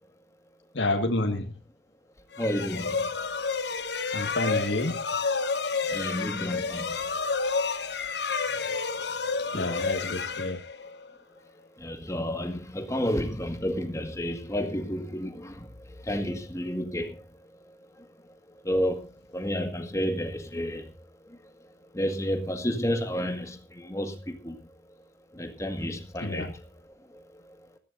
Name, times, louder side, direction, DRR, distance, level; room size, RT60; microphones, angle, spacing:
voice 1, 0.7-1.5 4.1-5.0 9.5-10.6 26.2-26.5, left 2 dB, 90° left, 1.9 m, -29 dB
sound 1, 2.3-11.1, left 4 dB, 70° left, 1.2 m, -30 dB
voice 2, 2.4-3.1 5.8-7.0 9.5-9.9 11.8-17.3 18.0-18.1 18.6-21.0 21.3-21.4 21.9-24.6 25.3-26.7 27.1-27.6, equal, 15° left, 1.9 m, -31 dB
20.0 x 15.0 x 2.7 m
head